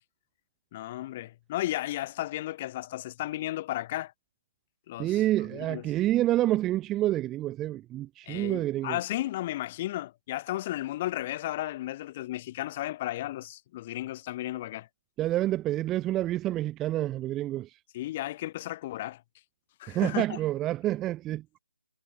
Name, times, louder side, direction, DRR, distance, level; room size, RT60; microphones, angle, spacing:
voice 1, 0.7-4.1 4.9-5.2 5.5-5.8 8.3-14.9 17.9-19.2 19.8-20.4, left 15 dB, 25° left, 3.5 m, -34 dB
voice 2, 5.0-9.0 15.2-17.8 19.9-21.4, right 14 dB, 10° right, 1.0 m, -28 dB
figure-of-eight pair, 160°, 0 cm